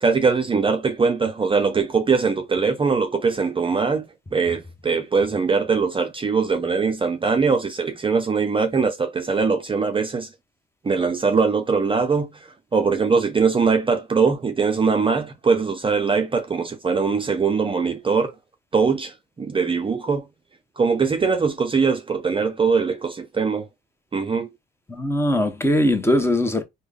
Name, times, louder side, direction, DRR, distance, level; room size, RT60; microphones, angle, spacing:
voice 1, 0.0-4.1 4.3-10.3 10.8-12.3 12.7-18.3 18.7-20.2 20.8-23.6 24.1-24.5, right 5 dB, 25° right, 0.5 m, -21 dB
voice 2, 24.9-26.6, left 1 dB, 10° left, 0.8 m, -20 dB
3.4 x 2.1 x 3.5 m
cardioid pair, 90°, 20 cm